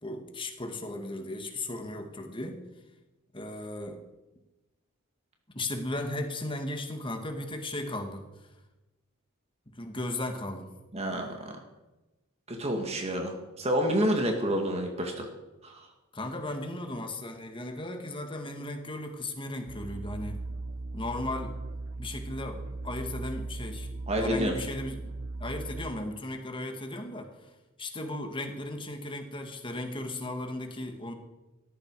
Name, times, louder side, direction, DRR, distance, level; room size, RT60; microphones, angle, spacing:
voice 1, 0.0-2.6 3.3-4.0 5.5-8.3 9.8-10.7 16.1-20.4 20.9-21.6 22.0-23.9 24.2-25.1 25.4-27.3 27.8-31.1, left 1 dB, 25° left, 5 dB, 2.0 m, -36 dB
voice 2, 10.9-11.4 12.5-15.3 15.6-15.9 24.1-24.6, equal, 30° right, 2 dB, 2.1 m, -28 dB
sound 1, 19.7-25.9, right 2 dB, 60° right, 0.9 m, -38 dB
17.5 x 14.0 x 4.8 m, 1.0 s
head